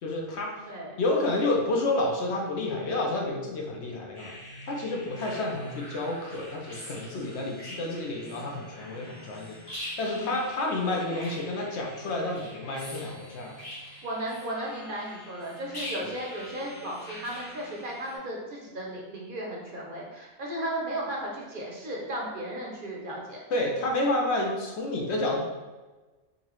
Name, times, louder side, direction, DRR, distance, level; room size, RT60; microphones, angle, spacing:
voice 1, 0.0-0.6 1.0-4.3 4.7-9.6 10.0-13.6 16.0-16.1 23.5-25.4, left 2 dB, 65° left, 0 dB, 0.9 m, -29 dB
voice 2, 0.7-1.0 10.0-10.4 14.0-23.4, right 1 dB, 55° right, -2 dB, 0.7 m, -35 dB
sound 1, 4.1-18.2, left 1 dB, 35° left, 1.1 m, -44 dB
4.0 x 2.6 x 3.0 m, 1.2 s
omnidirectional pair, 1.2 m